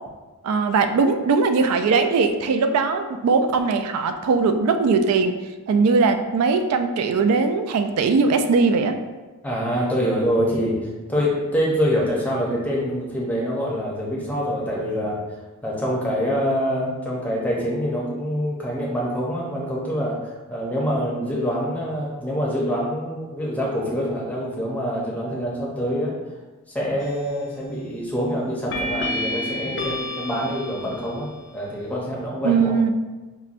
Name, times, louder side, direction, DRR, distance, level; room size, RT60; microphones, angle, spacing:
voice 1, 0.4-5.4 5.7-9.0 32.4-32.9, right 4 dB, 85° right, 8 dB, 0.3 m, -20 dB
voice 2, 9.4-15.2 15.6-26.2 26.7-32.7, equal, 5° left, -4 dB, 0.6 m, -25 dB
sound 1, 27.0-27.5 28.7-31.5, left 1 dB, 55° left, 0.4 m, -30 dB
5.5 x 2.1 x 2.5 m, 1.2 s
head